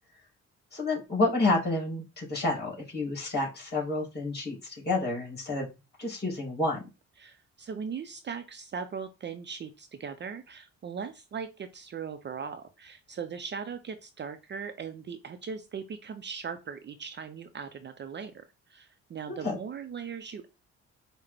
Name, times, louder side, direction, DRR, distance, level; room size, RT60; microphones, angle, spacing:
voice 1, 0.7-5.7 6.0-6.8 19.3-19.6, left 2 dB, 35° left, -2 dB, 2.7 m, -29 dB
voice 2, 7.2-18.4 18.7-20.5, right 6 dB, 35° right, 8 dB, 0.5 m, -39 dB
5.6 x 2.1 x 3.4 m, 0.27 s
cardioid pair, 90°, 30 cm